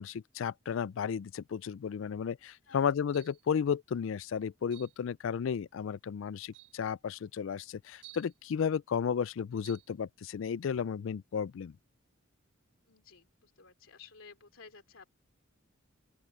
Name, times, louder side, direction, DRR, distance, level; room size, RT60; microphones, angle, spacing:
voice 1, 0.0-11.7, left 7 dB, 70° left, 0.3 m, -33 dB
sound 1, 3.1-3.5 4.7-5.0 5.9-6.0 6.5-6.8 8.0-8.4 9.6-9.9, right 17 dB, 60° right, 3.6 m, -54 dB
voice 2, 12.8-15.1, left 5 dB, 90° left, 2.8 m, -54 dB
open air
head